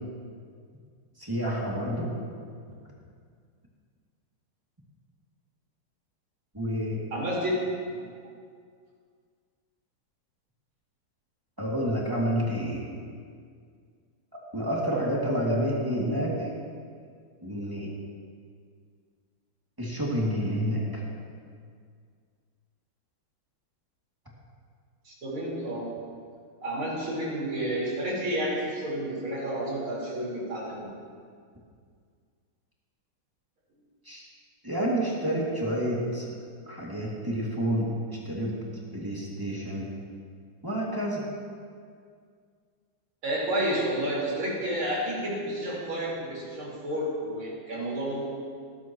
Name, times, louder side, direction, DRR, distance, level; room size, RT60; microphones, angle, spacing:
voice 1, 1.2-2.1 6.5-7.0 11.6-12.8 14.5-16.5 17.4-17.9 19.8-21.0 34.1-34.2 34.6-36.3 36.7-37.9 38.2-38.6 38.9-39.9 40.6-41.2, equal, 10° right, -5 dB, 2.4 m, -29 dB
voice 2, 7.1-7.5 7.9-8.0 25.0-25.9 26.6-30.9 43.2-48.2, right 1 dB, 80° right, -7 dB, 5.4 m, -30 dB
19.5 x 12.5 x 3.1 m, 2.1 s
omnidirectional pair, 2.2 m